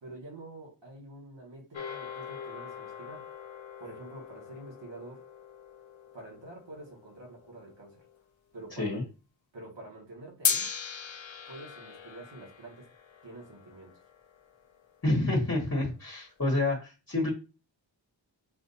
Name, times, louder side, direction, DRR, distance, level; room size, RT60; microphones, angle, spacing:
voice 1, 0.0-3.3 3.8-5.3 6.1-8.1 8.5-9.0 9.5-10.7 11.5-12.9 13.2-14.0, right 2 dB, 70° right, -1 dB, 1.4 m, -47 dB
sound 1, 1.7-8.2 10.4-14.9, left 7 dB, 90° left, 0.6 m, -38 dB
voice 2, 15.0-17.3, left 2 dB, 35° left, -2 dB, 1.2 m, -28 dB
5.8 x 2.5 x 2.7 m, 0.31 s
wide cardioid pair, 70°, 45 cm